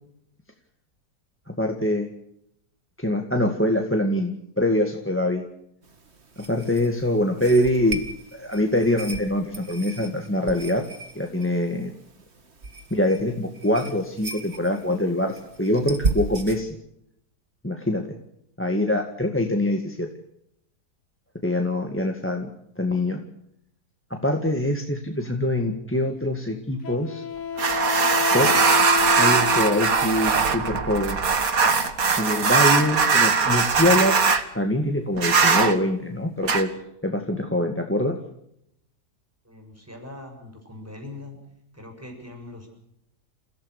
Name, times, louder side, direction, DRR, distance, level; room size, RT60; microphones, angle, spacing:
voice 1, 1.6-2.1 3.0-5.4 6.5-8.0 8.3-10.9 11.1-11.9 12.9-16.7 17.6-18.1 18.6-20.1 21.4-22.5 22.8-23.2 24.1-27.2 28.3-28.6 29.2-31.2 32.2-34.1 34.5-36.8 37.0-38.2, left 1 dB, 5° left, 4 dB, 1.9 m, -24 dB
sound 1, 5.8-16.6, right 3 dB, 40° right, 2.2 m, -35 dB
Wind instrument woodwind instrument, 26.8-30.4, left 6 dB, 80° left, 2.0 m, -29 dB
sound 2, 27.6-34.4 35.2-35.7 36.4-36.6, right 5 dB, 55° right, 2.1 m, -20 dB
voice 2, 39.4-41.4 41.7-42.7, left 2 dB, 10° right, 3 dB, 7.2 m, -41 dB
29.5 x 16.5 x 6.6 m, 0.77 s
omnidirectional pair, 1.8 m